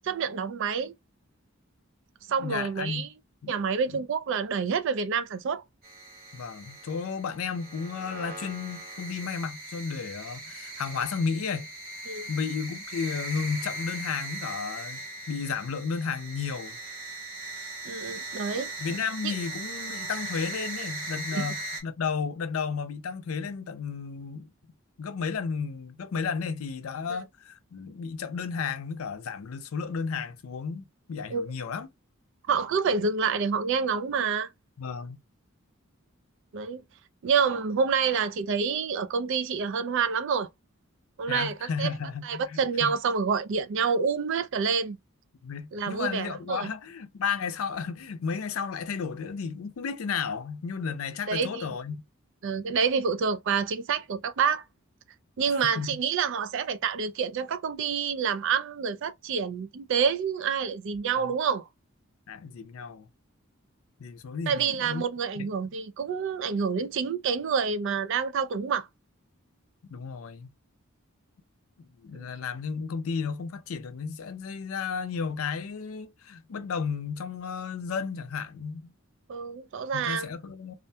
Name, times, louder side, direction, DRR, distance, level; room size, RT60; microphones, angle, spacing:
voice 1, 0.0-0.9 2.3-3.1 3.5-5.6 12.1-12.3 17.8-18.7 19.2-19.3 21.3-21.5 27.1-27.2 31.3-31.5 32.5-34.5 36.5-36.8 37.2-40.5 41.2-41.9 42.2-45.0 45.7-46.7 51.3-51.7 52.4-54.6 55.4-61.7 64.5-68.9 72.1-72.3 79.3-80.3, right 6 dB, 60° right, 0.4 m, -28 dB
voice 2, 2.4-3.1 3.4-3.5 6.3-11.7 12.3-16.8 18.8-24.5 25.0-31.9 34.8-35.2 41.3-42.9 45.4-52.0 55.8-55.9 61.2-61.3 62.3-63.1 64.0-65.0 65.4-65.5 69.9-70.5 71.8-78.9 79.9-80.8, left 5 dB, 80° left, 0.5 m, -33 dB
sound 1, 5.8-21.8, right 2 dB, 45° right, 1.1 m, -39 dB
2.4 x 2.2 x 2.6 m
head